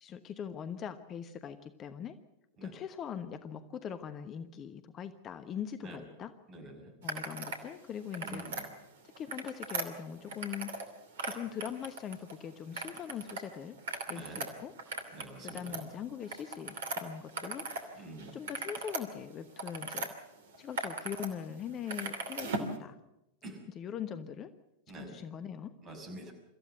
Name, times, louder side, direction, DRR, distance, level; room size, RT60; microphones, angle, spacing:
voice 1, 0.0-2.2 2.6-6.3 7.0-8.7 9.2-10.7 11.2-13.8 14.1-14.7 15.4-17.7 18.0-18.1 18.3-20.1 20.6-23.0 23.7-24.5 25.1-25.7, left 8 dB, 30° left, 10 dB, 1.1 m, -41 dB
voice 2, 6.5-6.9 8.2-8.7 14.1-14.4 15.1-15.8 18.0-18.4 23.4-23.6 24.9-25.1 25.8-26.3, right 1 dB, 30° right, 4 dB, 6.1 m, -46 dB
sound 1, 7.0-7.6 8.0-8.7 9.1-10.9 11.1-12.3 12.7-13.4 13.7-17.9 18.2-20.1 20.5-21.3 21.6-22.7, right 3 dB, 60° right, 2.7 m, -39 dB
25.0 x 14.5 x 8.0 m, 0.87 s
figure-of-eight pair, 90°, 0 cm